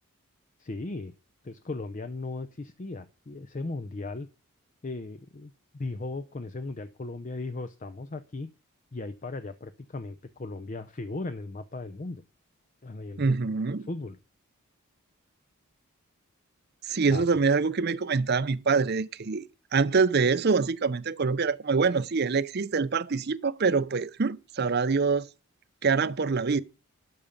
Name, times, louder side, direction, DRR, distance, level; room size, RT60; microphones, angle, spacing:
voice 1, 0.6-1.1 1.4-4.3 4.8-8.5 8.9-12.2 12.8-13.5 13.9-14.2 17.1-17.2, left 2 dB, 35° left, 0.5 m, -37 dB
voice 2, 13.2-13.9 16.8-19.4 19.7-25.3 25.8-26.6, right 4 dB, 45° right, 0.6 m, -25 dB
12.0 x 7.0 x 5.1 m
head